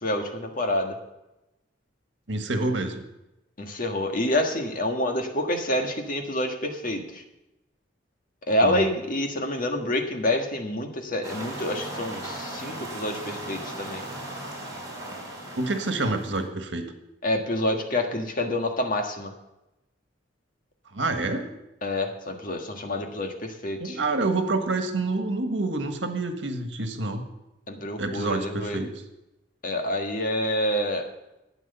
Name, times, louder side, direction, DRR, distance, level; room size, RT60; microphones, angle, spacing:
voice 1, 0.0-1.0 3.6-7.2 8.5-14.0 17.2-19.3 21.8-24.0 27.7-28.8 29.6-31.1, left 1 dB, 45° left, 4 dB, 1.7 m, -27 dB
voice 2, 2.3-3.0 8.6-8.9 15.5-16.9 20.9-21.5 23.8-27.2 28.0-28.9, right 2 dB, 80° right, 6 dB, 1.6 m, -27 dB
sound 1, 11.2-16.5, right 1 dB, 20° right, 3.9 m, -37 dB
13.0 x 9.2 x 6.9 m, 0.94 s
head